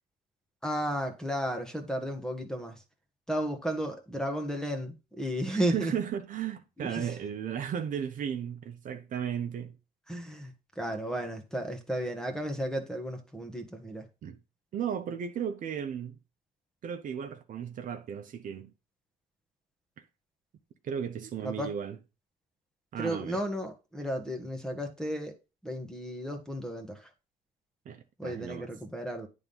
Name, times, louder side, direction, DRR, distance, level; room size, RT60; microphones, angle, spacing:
voice 1, 0.6-2.8 3.3-5.9 6.8-7.0 10.1-14.1 21.4-21.7 23.0-25.4 25.6-27.1 28.2-29.3, equal, 5° left, 1.4 m, -33 dB
voice 2, 5.5-9.8 14.2-14.4 14.7-16.1 16.8-18.7 20.8-22.0 22.9-23.4 27.8-28.7, right 8 dB, 50° right, 0.9 m, -35 dB
9.5 x 3.7 x 5.5 m
cardioid pair, 110°, 17 cm